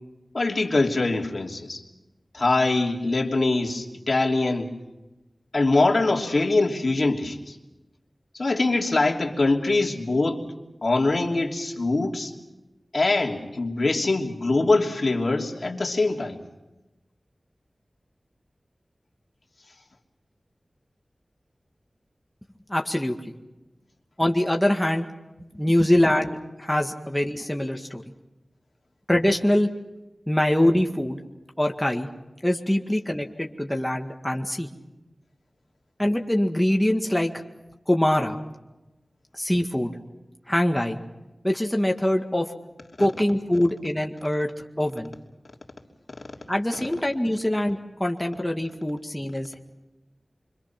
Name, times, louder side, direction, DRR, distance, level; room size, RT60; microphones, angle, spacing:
voice 1, 0.3-1.8 2.3-4.7 5.5-7.6 8.3-10.4 10.8-12.3 12.9-16.4 43.0-43.1, left 2 dB, 60° left, 0 dB, 3.1 m, -23 dB
voice 2, 22.7-23.3 24.2-25.1 25.5-28.0 29.1-29.7 30.3-31.2 31.6-32.1 32.4-34.7 36.0-37.3 37.9-38.4 39.3-39.9 40.5-41.0 41.4-42.5 43.0-44.5 44.8-45.1 46.5-49.6, left 1 dB, 10° left, 2 dB, 1.9 m, -23 dB
27.0 x 25.0 x 6.0 m, 1.0 s
wide cardioid pair, 45°, 0 cm